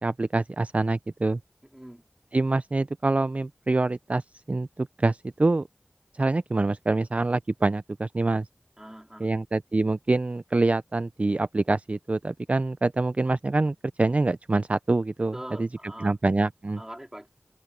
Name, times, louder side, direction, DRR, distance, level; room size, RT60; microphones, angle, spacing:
voice 1, 0.0-1.4 2.3-5.7 6.1-8.5 9.2-15.7 16.0-16.8, right 2 dB, 45° right, 0.3 m, -25 dB
voice 2, 8.8-9.3 15.3-16.2 16.8-17.3, right 1 dB, 15° right, 4.0 m, -42 dB
wide cardioid pair, 45°, 3 cm